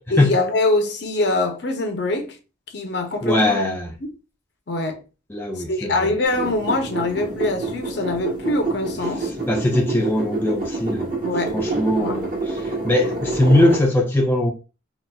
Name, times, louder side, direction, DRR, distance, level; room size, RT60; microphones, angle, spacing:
voice 1, 0.1-2.4 2.7-3.6 4.0-4.1 4.7-5.0 5.6-9.3 11.2-11.6 12.0-12.2, left 2 dB, 55° left, 0.7 m, -23 dB
voice 2, 3.2-3.9 5.3-6.1 9.4-11.1 11.5-14.5, left 1 dB, 10° left, 0.5 m, -20 dB
sound 1, 6.2-13.8, right 2 dB, 40° right, 1.1 m, -27 dB
4.0 x 2.5 x 2.3 m
head